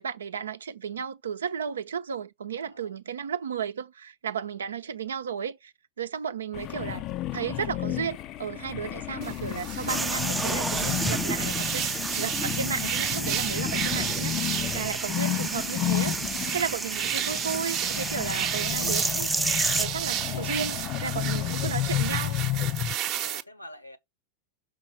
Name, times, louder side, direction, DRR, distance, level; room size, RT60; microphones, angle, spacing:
voice 1, 0.0-16.2 16.5-22.4, right 7 dB, 70° right, 0.7 m, -34 dB
voice 2, 2.6-3.5 20.2-21.3 23.2-24.0, left 1 dB, 85° left, 1.3 m, -48 dB
sound 1, 6.5-16.7 17.1-22.9, left 14 dB, 35° left, 0.5 m, -32 dB
sound 2, 9.2-23.4, right 12 dB, 40° right, 1.0 m, -33 dB
sound 3, 9.9-19.9, right 2 dB, 10° right, 0.6 m, -31 dB
6.5 x 5.0 x 5.7 m
figure-of-eight pair, 90°, 0 cm